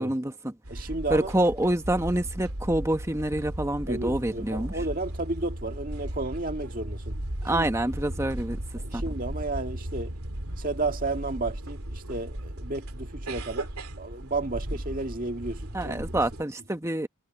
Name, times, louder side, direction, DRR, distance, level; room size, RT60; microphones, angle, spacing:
voice 1, 0.0-0.5 1.1-4.8 7.4-8.6 8.9-9.0 15.7-17.1, right 1 dB, 10° right, 1.0 m, -27 dB
sound 1, 0.6-16.4, right 1 dB, 80° right, 3.0 m, -36 dB
voice 2, 0.7-1.3 3.9-7.2 7.5-7.7 8.8-10.1 10.6-13.7 14.0-16.1, right 2 dB, 40° right, 2.0 m, -32 dB
head